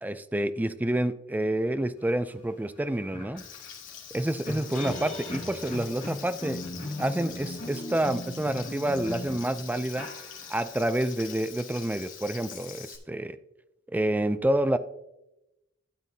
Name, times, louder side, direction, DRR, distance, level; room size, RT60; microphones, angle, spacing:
voice 1, 0.0-3.4 4.1-6.6 7.0-10.1 10.5-13.4 13.9-14.8, right 1 dB, 10° right, 12 dB, 0.4 m, -28 dB
sound 1, 2.3-2.4 2.8-10.8, left 1 dB, 40° left, 2.4 m, -38 dB
Frying (food), 3.4-13.0, left 8 dB, 75° left, 2.2 m, -45 dB
12.5 x 8.2 x 2.7 m, 0.90 s
head